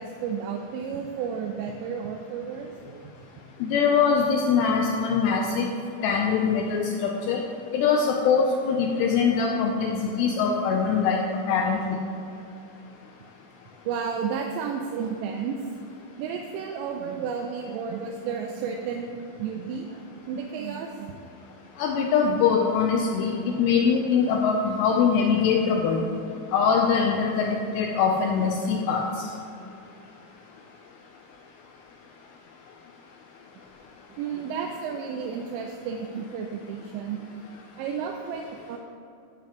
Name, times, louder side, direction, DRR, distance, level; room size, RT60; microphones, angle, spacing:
voice 1, 0.0-3.1 13.9-15.6 16.2-21.2 34.2-37.4 37.8-38.8, right 6 dB, 85° right, 2 dB, 2.7 m, -32 dB
voice 2, 3.6-5.7 6.0-7.4 7.7-11.2 11.5-12.0 21.8-26.0 26.5-29.0, left 6 dB, 90° left, 0 dB, 2.4 m, -23 dB
13.0 x 6.9 x 3.0 m, 2.7 s
omnidirectional pair, 5.4 m